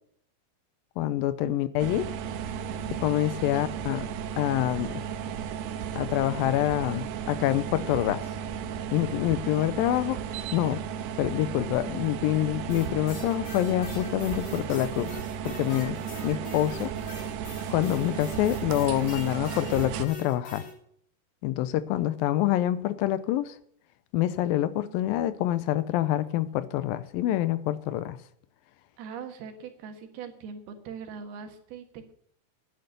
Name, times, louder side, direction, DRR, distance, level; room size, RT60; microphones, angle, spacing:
voice 1, 1.0-2.1 3.0-4.1 4.4-4.9 6.0-8.2 8.9-10.2 10.5-10.8 11.2-15.2 15.4-16.0 16.2-16.9 17.7-20.7 21.4-23.6 24.1-28.2, left 13 dB, 80° left, 14 dB, 2.1 m, -26 dB
sound 1, 1.8-20.1, right 8 dB, 90° right, 2.9 m, -34 dB
voice 2, 3.4-3.7 29.0-32.1, right 6 dB, 75° right, 5 dB, 3.5 m, -41 dB
sound 2, 12.7-20.7, left 2 dB, 60° left, 5.4 m, -43 dB
10.5 x 10.0 x 6.8 m, 0.67 s
omnidirectional pair, 4.6 m